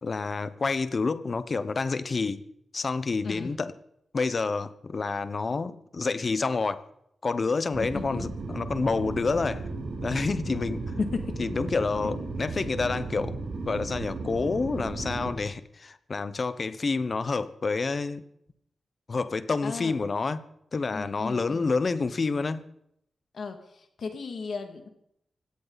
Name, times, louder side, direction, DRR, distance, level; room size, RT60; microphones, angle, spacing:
voice 1, 0.0-2.4 2.7-3.7 4.1-6.8 7.2-9.7 10.0-10.9 11.4-13.4 13.6-18.2 19.1-20.4 20.7-22.7, left 4 dB, 40° left, 1.0 m, -28 dB
sound 1, 7.7-15.3, right 3 dB, 75° right, 5.8 m, -35 dB
voice 2, 7.8-8.3 11.0-11.3 19.6-20.0 20.9-21.7 23.3-24.9, left 4 dB, 65° left, 2.3 m, -35 dB
20.5 x 17.0 x 4.1 m
wide cardioid pair, 145°, 0 cm